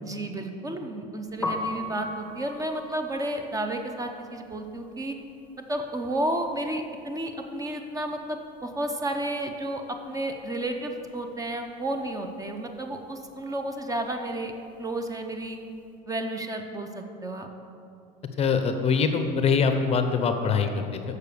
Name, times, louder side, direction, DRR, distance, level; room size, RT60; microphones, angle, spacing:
voice 1, 0.0-5.2 5.7-14.5 14.8-15.6 16.1-17.5, right 1 dB, 15° right, 5 dB, 0.7 m, -32 dB
Piano, 1.3-7.2 7.5-9.1 9.3-15.8, left 2 dB, 10° left, 1.2 m, -39 dB
voice 2, 18.4-21.2, left 5 dB, 30° left, 7 dB, 0.7 m, -24 dB
6.7 x 6.7 x 6.9 m, 2.5 s
supercardioid pair, 120°, 20 cm